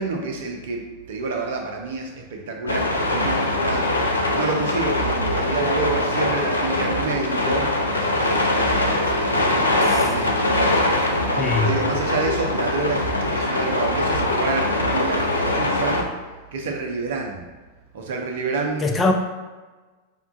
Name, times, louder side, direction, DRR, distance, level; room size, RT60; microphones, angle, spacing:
voice 1, 0.0-4.0 4.3-7.7 8.1-11.0 11.6-16.1 16.5-17.4 17.9-18.8, right 3 dB, 55° right, 2 dB, 0.5 m, -28 dB
sound 1, 2.7-16.0, left 1 dB, 80° left, 0.4 m, -22 dB
voice 2, 11.4-11.7 18.8-19.1, left 3 dB, 15° left, 2 dB, 0.4 m, -21 dB
5.1 x 2.3 x 2.5 m, 1.3 s
figure-of-eight pair, 90°, 0 cm